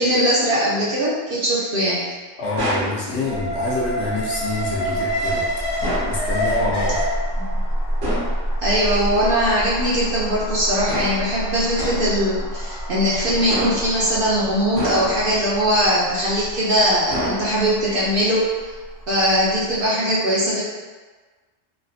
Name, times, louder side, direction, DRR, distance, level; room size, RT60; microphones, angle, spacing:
voice 1, 0.0-2.0 7.4-7.5 8.6-18.5 19.1-20.6, equal, 55° right, -7 dB, 0.6 m, -20 dB
voice 2, 2.4-5.5 6.1-7.1, left 2 dB, 60° left, -5 dB, 0.8 m, -26 dB
sound 1, 2.6-3.0 5.8-6.2 8.0-8.4 10.9-11.3 11.8-12.2 13.5-14.0 14.8-15.4 17.1-17.8, equal, 70° right, 1.1 m, -27 dB
Alarm, 3.3-19.4 19.7-19.8, equal, 40° left, 0.3 m, -27 dB
3.2 x 2.5 x 2.4 m, 1.3 s
omnidirectional pair, 1.3 m